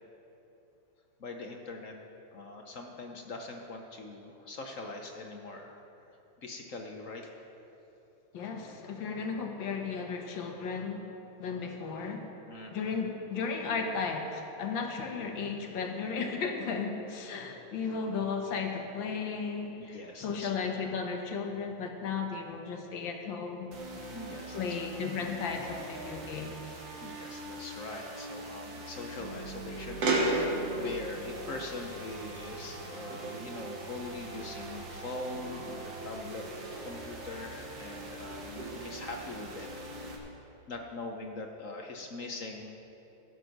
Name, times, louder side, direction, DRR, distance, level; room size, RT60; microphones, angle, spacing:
voice 1, 1.2-1.9 2.3-5.8 6.4-7.3 12.5-13.0 19.9-20.7 23.9-24.8 26.8-39.7 40.7-42.8, left 2 dB, 50° left, 2 dB, 1.1 m, -42 dB
voice 2, 8.3-11.1 11.4-12.2 12.7-23.8 24.5-26.5, left 5 dB, 80° left, 3 dB, 2.0 m, -35 dB
sound 1, 23.7-40.2, right 2 dB, 75° right, 2.2 m, -43 dB
sound 2, 30.0-32.8 33.1-34.6 35.3-36.7 37.3-37.4 38.2-39.5, right 2 dB, 55° right, 1.9 m, -35 dB
16.5 x 8.0 x 6.0 m, 3.0 s
omnidirectional pair, 2.1 m